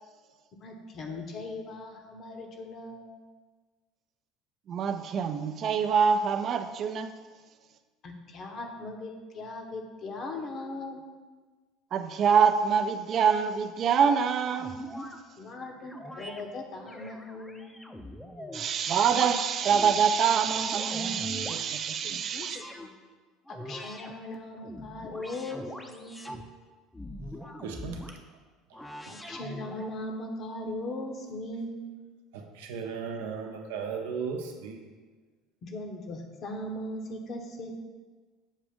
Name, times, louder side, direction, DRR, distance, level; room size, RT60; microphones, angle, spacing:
voice 1, 0.6-3.2 8.0-11.1 15.4-17.9 22.0-22.9 23.5-26.3 29.1-31.8 35.6-37.7, left 2 dB, 50° left, 0.9 m, -39 dB
voice 2, 4.7-7.2 11.9-14.9 18.5-22.6, right 7 dB, 50° right, 0.4 m, -25 dB
sound 1, 14.5-15.2 15.9-16.4 16.9-18.7 19.1-20.0 20.5-21.6 22.3-22.9 23.5-24.1 24.6-26.4 26.9-28.2 28.7-30.0, left 1 dB, 10° left, 0.5 m, -42 dB
voice 3, 27.6-28.0 29.0-29.2 32.3-34.9, right 6 dB, 85° right, 0.7 m, -36 dB
7.3 x 2.5 x 5.1 m
supercardioid pair, 85°, 0 cm